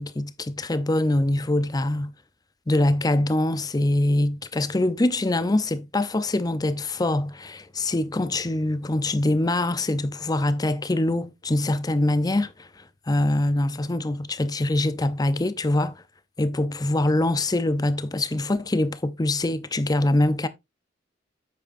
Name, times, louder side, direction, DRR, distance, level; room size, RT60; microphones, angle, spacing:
voice 1, 0.0-2.1 2.7-16.0 16.4-20.5, left 1 dB, 20° left, 0.6 m, -24 dB
9.1 x 7.6 x 2.6 m
head